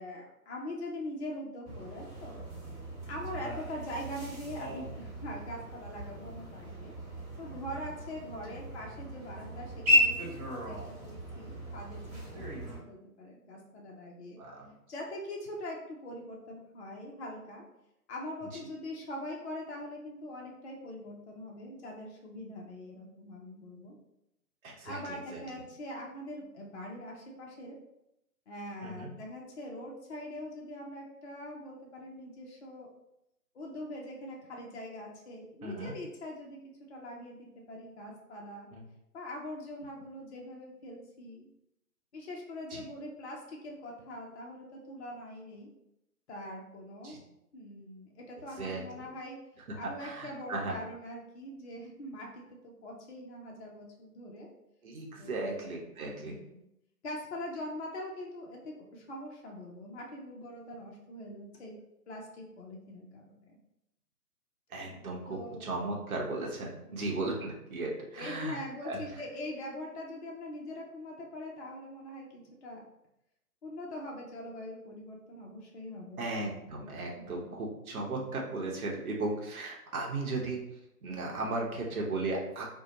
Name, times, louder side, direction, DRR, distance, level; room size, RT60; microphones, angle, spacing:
voice 1, 0.0-2.4 3.1-6.9 7.4-12.2 12.5-14.4 14.9-17.6 18.1-24.0 24.8-27.8 28.5-32.9 33.5-36.6 36.9-38.7 39.1-41.5 42.1-45.7 46.3-47.2 47.5-49.4 49.8-54.5 55.2-56.6 57.0-61.7 62.1-63.6 65.3-65.7 66.9-67.2 68.1-72.8 73.6-76.3 77.1-77.6, left 1 dB, 45° left, -1 dB, 0.5 m, -43 dB
sound 1, 1.6-12.8, left 1 dB, 25° right, 1.1 m, -35 dB
voice 2, 14.4-14.7 24.6-25.4 28.8-29.1 35.6-35.9 38.7-38.8 42.7-42.8 47.0-47.2 48.6-48.8 50.0-50.8 54.8-56.4 64.7-69.0 76.2-80.6 81.0-82.6, right 2 dB, 65° right, -1 dB, 0.8 m, -36 dB
2.6 x 2.1 x 2.8 m, 0.84 s
figure-of-eight pair, 140°, 47 cm